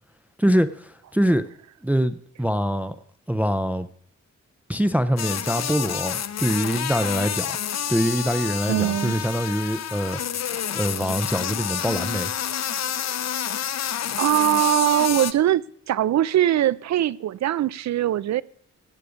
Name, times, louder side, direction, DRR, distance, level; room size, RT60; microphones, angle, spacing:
voice 1, 0.4-1.5 1.8-3.0 3.3-3.9 4.7-7.6 7.9-12.3, equal, 5° right, 0.4 m, -24 dB
sound 1, 5.2-15.3, left 9 dB, 65° left, 0.6 m, -29 dB
voice 2, 8.7-9.1 14.1-18.4, right 12 dB, 65° right, 0.4 m, -21 dB
16.5 x 8.2 x 5.1 m
wide cardioid pair, 175°, 29 cm